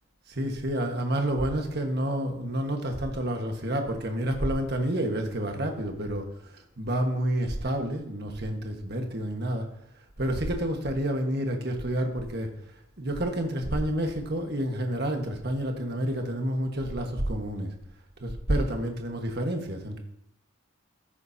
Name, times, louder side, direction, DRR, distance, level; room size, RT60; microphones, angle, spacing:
voice 1, 0.3-9.7 10.2-17.7 18.2-20.0, right 1 dB, 50° right, 3 dB, 1.5 m, -29 dB
14.5 x 9.8 x 2.8 m, 0.78 s
head